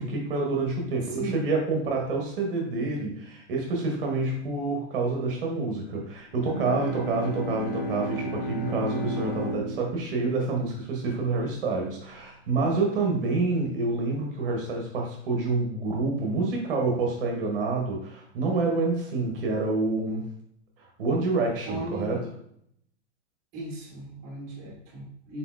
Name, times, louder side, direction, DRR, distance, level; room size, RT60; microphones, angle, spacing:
voice 1, 0.0-20.3 20.8-22.2, right 3 dB, 50° right, 1 dB, 0.8 m, -28 dB
voice 2, 1.0-1.4 21.7-22.3 23.5-25.4, right 1 dB, 20° right, -2 dB, 0.9 m, -37 dB
Bowed string instrument, 6.3-11.7, right 1 dB, 40° left, 0.5 m, -34 dB
4.1 x 3.9 x 2.3 m, 0.70 s
supercardioid pair, 175°, 36 cm